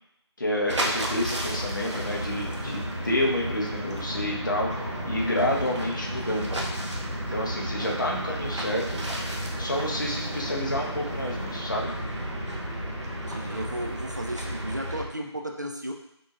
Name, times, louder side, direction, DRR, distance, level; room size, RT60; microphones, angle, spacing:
voice 1, 0.4-6.5 7.3-9.0 9.5-11.9, left 1 dB, 45° left, -2 dB, 0.9 m, -29 dB
sound 1, 0.7-15.1, right 1 dB, 80° right, 0.9 m, -33 dB
sound 2, 2.0-14.0, left 2 dB, 75° left, 0.5 m, -41 dB
sound 3, 4.2-6.6 8.1-9.9 11.3-11.8, equal, 5° right, 1.4 m, -50 dB
voice 2, 13.3-15.9, right 1 dB, 40° right, 2 dB, 0.4 m, -34 dB
6.0 x 3.0 x 2.4 m, 0.78 s
figure-of-eight pair, 175°, 15 cm